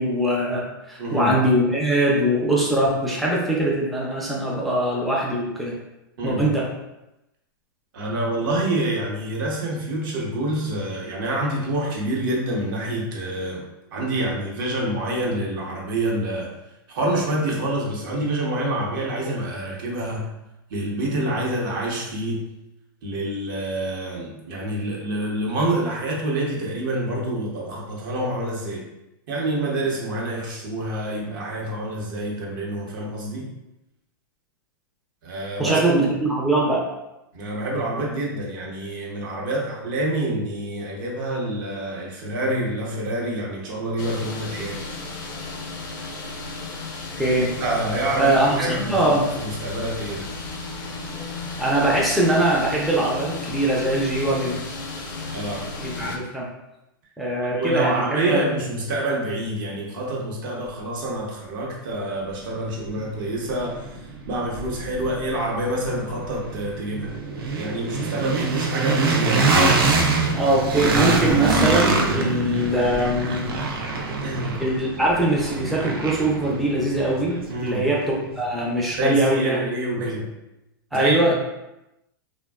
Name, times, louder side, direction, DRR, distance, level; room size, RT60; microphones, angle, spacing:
voice 1, 0.0-5.8 6.2-6.7 35.6-36.8 47.2-47.5 48.2-49.3 51.6-54.6 55.8-56.5 57.2-58.4 70.3-73.5 74.6-79.6 80.9-81.3, right 1 dB, ahead, -4 dB, 0.4 m, -22 dB
voice 2, 1.0-1.4 6.2-6.5 7.9-13.6 13.9-16.5 16.9-20.3 20.7-22.5 23.0-28.9 29.3-33.5 35.2-35.8 37.3-44.8 47.6-50.3 55.0-55.1 55.3-55.7 57.4-64.0 64.3-67.1 67.6-69.5 74.1-74.6 77.5-77.9 79.0-80.4 80.9-81.3, right 1 dB, 60° right, -2 dB, 0.8 m, -27 dB
sound 1, 44.0-56.2, left 3 dB, 55° left, 0.6 m, -34 dB
sound 2, 61.9-62.0 62.4-78.4, right 3 dB, 85° right, 0.4 m, -25 dB
2.6 x 2.2 x 2.2 m, 0.93 s
hypercardioid pair, 120°, 12 cm